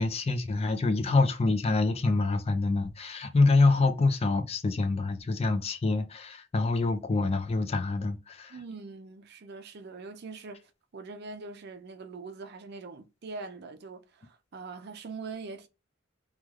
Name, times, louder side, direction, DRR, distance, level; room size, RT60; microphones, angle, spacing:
voice 1, 0.0-8.6, left 3 dB, 30° left, 0.4 m, -26 dB
voice 2, 8.5-15.7, right 4 dB, 55° right, 0.5 m, -43 dB
3.1 x 2.3 x 2.3 m
head